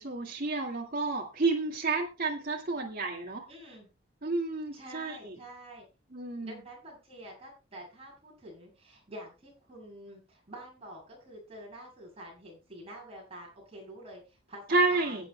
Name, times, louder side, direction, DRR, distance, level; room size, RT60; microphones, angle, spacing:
voice 1, 0.0-3.4 4.2-5.4 6.1-6.6 14.7-15.3, right 3 dB, 50° right, -2 dB, 2.1 m, -30 dB
voice 2, 3.5-3.9 4.7-5.8 6.4-15.3, right 1 dB, 30° right, -2 dB, 7.8 m, -47 dB
23.0 x 9.3 x 2.2 m, 0.30 s
head